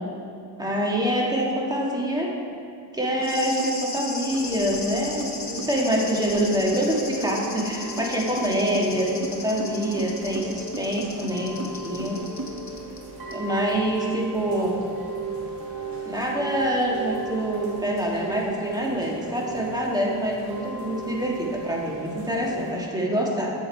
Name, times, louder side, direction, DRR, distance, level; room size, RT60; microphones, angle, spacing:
voice 1, 0.6-2.3 2.9-12.2 13.3-14.8 16.0-23.5, equal, 10° right, -2 dB, 1.6 m, -25 dB
sound 1, 3.2-13.0 13.3-13.4, left 3 dB, 40° left, 1.3 m, -37 dB
sound 2, 3.2-3.3 3.6-12.8, right 3 dB, 40° right, 0.8 m, -37 dB
Chime / Rain, 4.3-22.7, right 3 dB, 55° right, 1.9 m, -37 dB
7.7 x 7.4 x 4.5 m, 2.6 s
cardioid pair, 70°, 43 cm